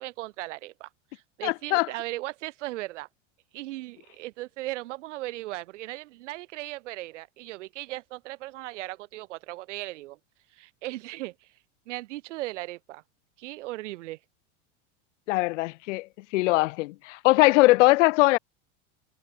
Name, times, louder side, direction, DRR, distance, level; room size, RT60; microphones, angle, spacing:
voice 1, 0.0-3.1 3.5-10.2 10.5-11.5 11.9-13.0 13.4-14.2, right 18 dB, 75° right, 3.9 m, -37 dB
voice 2, 1.4-1.9 15.3-16.1 16.3-18.4, left 20 dB, 80° left, 0.7 m, -21 dB
supercardioid pair, 145°, 36 cm